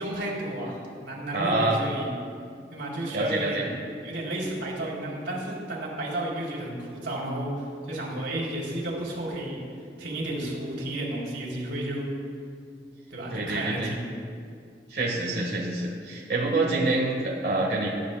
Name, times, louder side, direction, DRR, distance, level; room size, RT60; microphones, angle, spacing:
voice 1, 0.0-2.1 2.7-3.7 4.0-9.6 10.0-12.1 13.1-14.1, right 1 dB, 85° right, -3 dB, 3.0 m, -32 dB
voice 2, 1.3-1.8 3.1-3.7 13.3-14.0 14.9-17.9, right 2 dB, 60° right, -3 dB, 1.4 m, -26 dB
19.5 x 9.8 x 2.2 m, 2.2 s
head